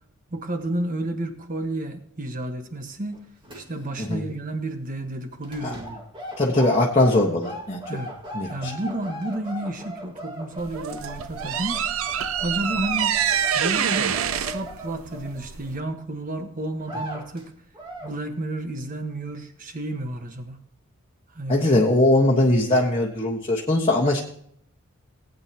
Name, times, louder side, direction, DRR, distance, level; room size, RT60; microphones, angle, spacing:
voice 1, 0.3-3.2 3.5-6.0 7.9-8.2 8.5-12.1 12.4-13.1 13.5-17.5 18.0-20.6 21.3-22.5, right 1 dB, 40° right, 6 dB, 1.4 m, -31 dB
sound 1, 3.1-4.1 4.3-4.6 5.4-15.9 16.3-16.4 16.8-17.4 17.7-18.2, equal, 20° right, 2.0 m, -38 dB
voice 2, 6.4-7.8 8.3-8.7 21.5-24.2, left 1 dB, 25° left, -2 dB, 1.4 m, -20 dB
sound 2, 10.6-15.8, right 8 dB, 70° right, 0.6 m, -26 dB
19.0 x 9.0 x 2.9 m, 0.66 s
head